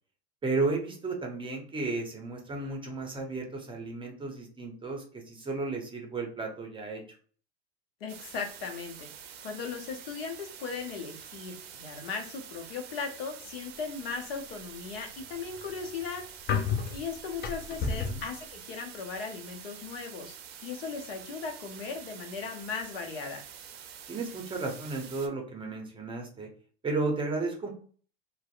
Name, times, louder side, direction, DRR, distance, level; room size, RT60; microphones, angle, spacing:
voice 1, 0.4-7.0 17.8-18.2 24.1-26.5 26.8-27.7, right 3 dB, 15° right, 1 dB, 0.6 m, -33 dB
voice 2, 8.0-9.1 9.4-16.3 16.9-20.3 20.6-23.4, left 5 dB, 70° left, 4 dB, 0.7 m, -37 dB
sound 1, 8.1-25.3, right 8 dB, 80° right, 0.5 m, -47 dB
sound 2, 15.1-18.3, left 6 dB, 35° left, 0.4 m, -32 dB
2.5 x 2.0 x 2.4 m, 0.43 s
hypercardioid pair, 95°, 30 cm